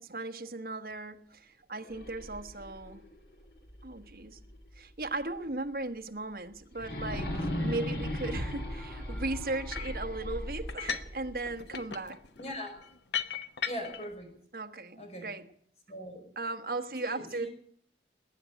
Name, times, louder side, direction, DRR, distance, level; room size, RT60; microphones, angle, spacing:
voice 1, 0.0-3.0 3.8-4.4 4.7-12.2 14.5-15.4 16.4-17.5, right 2 dB, 55° right, 1.3 m, -37 dB
sound 1, 1.8-4.8 5.2-5.3 6.7-11.8, left 1 dB, 60° left, 2.3 m, -38 dB
sound 2, 7.1-11.3, equal, 5° left, 1.5 m, -53 dB
sound 3, 9.7-10.0 10.7-11.2 11.5-14.1, left 8 dB, 80° left, 1.1 m, -37 dB
voice 2, 12.4-12.7 13.6-14.3 15.0-15.3 15.9-16.3 17.0-17.5, equal, 35° left, 5.1 m, -40 dB
20.0 x 9.3 x 7.8 m
head